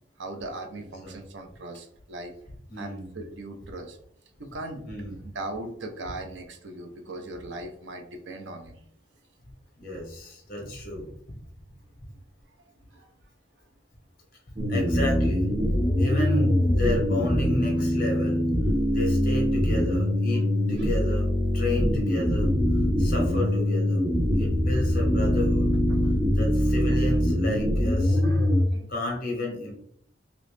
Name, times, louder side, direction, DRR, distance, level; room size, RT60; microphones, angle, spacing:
voice 1, 0.2-2.3 2.8-4.0 4.4-4.8 5.3-8.8 12.9-13.1 17.7-18.0 18.8-18.9 20.8-20.9 23.0-23.1 25.9-26.2 26.9-27.0 28.2-28.9, right 2 dB, 80° right, 5 dB, 0.6 m, -39 dB
voice 2, 2.7-3.1 4.8-5.2 9.8-11.4 14.7-18.4 18.9-20.4 20.7-22.5 23.0-24.0 24.3-25.7 26.3-28.2 28.9-29.7, left 1 dB, 55° left, -1 dB, 1.2 m, -32 dB
sound 1, 14.6-28.6, equal, 25° right, 0.7 m, -23 dB
3.0 x 2.9 x 3.2 m, 0.68 s
head